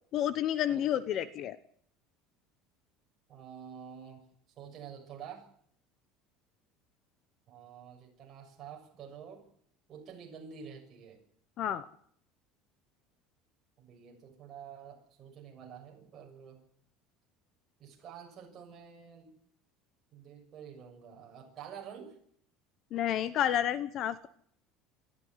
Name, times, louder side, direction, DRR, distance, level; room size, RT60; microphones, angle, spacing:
voice 1, 0.1-1.6 11.6-11.8 22.9-24.3, left 11 dB, 35° left, 15 dB, 0.9 m, -30 dB
voice 2, 3.3-4.2 4.6-5.5 7.5-9.4 9.9-11.2 13.8-16.6 17.8-19.3 20.1-22.2, right 7 dB, 30° right, 1 dB, 6.7 m, -48 dB
25.0 x 14.0 x 9.8 m, 0.65 s
cardioid pair, 175°, 0 cm